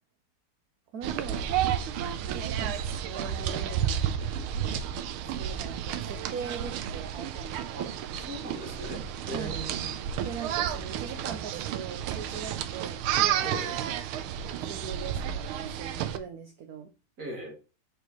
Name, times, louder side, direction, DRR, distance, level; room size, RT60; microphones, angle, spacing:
voice 1, 0.9-1.5 2.2-4.0 5.2-7.9 9.3-9.6 10.2-13.6 14.6-16.9, right 6 dB, 65° right, 6 dB, 1.0 m, -41 dB
sound 1, 1.0-16.2, right 9 dB, 80° right, 1.5 m, -31 dB
voice 2, 8.1-9.9 13.4-13.7 17.2-17.6, right 1 dB, 45° right, -2 dB, 2.4 m, -39 dB
6.4 x 5.2 x 3.1 m, 0.32 s
omnidirectional pair, 2.4 m